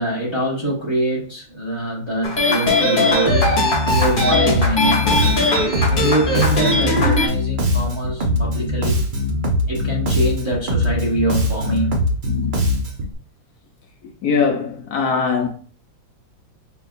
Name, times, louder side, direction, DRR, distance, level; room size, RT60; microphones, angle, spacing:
voice 1, 0.0-3.4 3.9-9.0 9.7-12.0 12.3-12.5, right 1 dB, 20° right, 0.9 m, -24 dB
sound 1, 2.2-7.3, left 2 dB, 35° left, 1.0 m, -19 dB
Bass guitar, 3.3-13.1, left 1 dB, 60° right, 0.5 m, -21 dB
voice 2, 14.2-15.5, left 5 dB, 65° left, 1.1 m, -20 dB
5.9 x 2.8 x 2.5 m
omnidirectional pair, 2.0 m